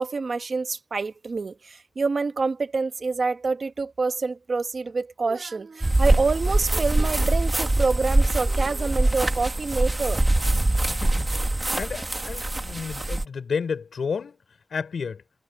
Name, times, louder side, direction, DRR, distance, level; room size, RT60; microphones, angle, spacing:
voice 1, 0.0-10.2, right 4 dB, 50° right, 1.4 m, -27 dB
sound 1, 5.8-13.2, right 2 dB, 20° right, 1.5 m, -23 dB
voice 2, 10.9-11.3 11.8-14.4 14.7-15.2, left 6 dB, 80° left, 5.6 m, -31 dB
wide cardioid pair, 130°, 0 cm